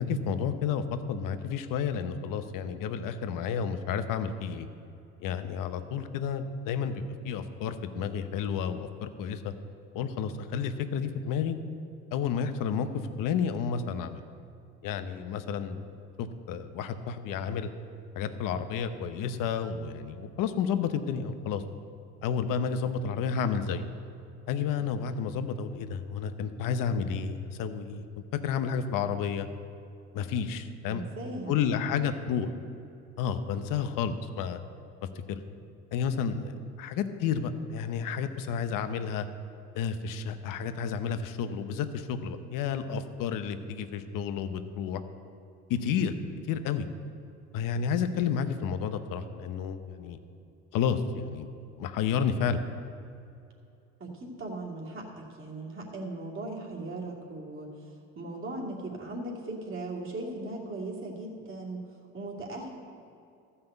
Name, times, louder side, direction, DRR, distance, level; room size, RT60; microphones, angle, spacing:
voice 1, 0.0-4.7 5.2-9.5 9.9-11.6 12.1-14.2 14.8-15.8 16.2-17.7 18.1-21.6 22.2-23.9 24.5-28.1 28.4-29.5 30.1-31.0 31.5-32.5 33.2-34.6 35.3-35.4 35.9-39.3 39.7-45.0 45.7-46.1 46.5-46.9 47.5-50.2 50.7-51.5 51.8-52.6, left 7 dB, 70° left, 9 dB, 1.0 m, -31 dB
voice 2, 30.9-31.6 54.0-57.9 58.1-61.8 62.1-62.7, right 2 dB, 35° right, -3 dB, 2.7 m, -38 dB
13.0 x 5.6 x 7.9 m, 2.6 s
supercardioid pair, 85°, 34 cm